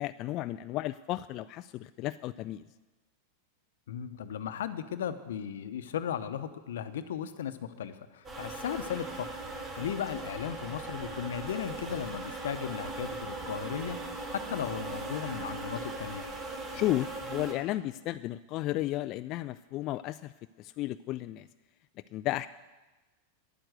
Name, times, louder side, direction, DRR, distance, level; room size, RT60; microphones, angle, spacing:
voice 1, 0.0-2.7 16.7-20.3 20.6-21.5 22.1-22.5, left 15 dB, 45° left, 12 dB, 0.3 m, -33 dB
voice 2, 3.9-9.3 9.7-16.3, left 9 dB, 80° left, 11 dB, 0.9 m, -36 dB
sound 1, 8.2-17.5, right 2 dB, 25° right, 2.7 m, -39 dB
10.5 x 8.9 x 8.0 m, 1.2 s
hypercardioid pair, 115°, 0 cm